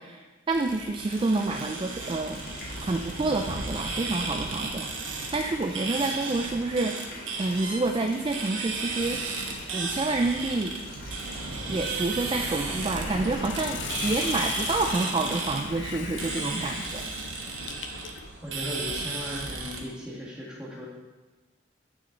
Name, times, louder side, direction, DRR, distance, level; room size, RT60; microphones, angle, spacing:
voice 1, 0.0-2.4 2.8-6.9 7.4-9.2 9.7-10.7 11.7-17.0 17.4-17.5, right 2 dB, 25° right, 3 dB, 0.3 m, -28 dB
sound 1, 0.5-19.8, right 3 dB, 90° right, 1.1 m, -34 dB
Water tap faucet, 1.1-15.6, left 1 dB, 50° left, 1.5 m, -44 dB
Hiss, 12.5-18.3, left 8 dB, 65° left, 0.4 m, -39 dB
voice 2, 18.4-20.9, left 1 dB, 5° right, -6 dB, 1.6 m, -37 dB
7.9 x 6.3 x 3.8 m, 1.2 s
head